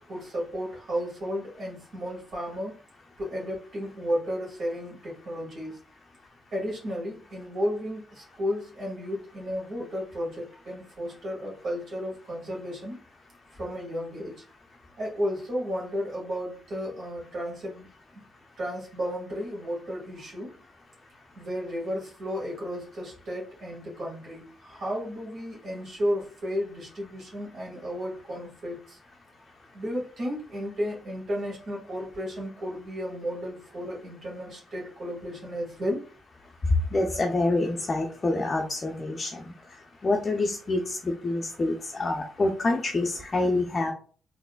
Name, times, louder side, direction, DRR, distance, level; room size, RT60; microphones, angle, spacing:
voice 1, 0.1-2.8 3.2-5.8 6.5-13.0 13.5-14.4 15.0-17.9 18.6-20.5 21.4-29.0 29.7-36.0, equal, 60° right, -4 dB, 1.8 m, -33 dB
voice 2, 36.9-39.5 40.0-43.9, left 2 dB, 30° left, 2 dB, 0.5 m, -27 dB
3.8 x 3.1 x 2.3 m, 0.42 s
cardioid pair, 90°, 0 cm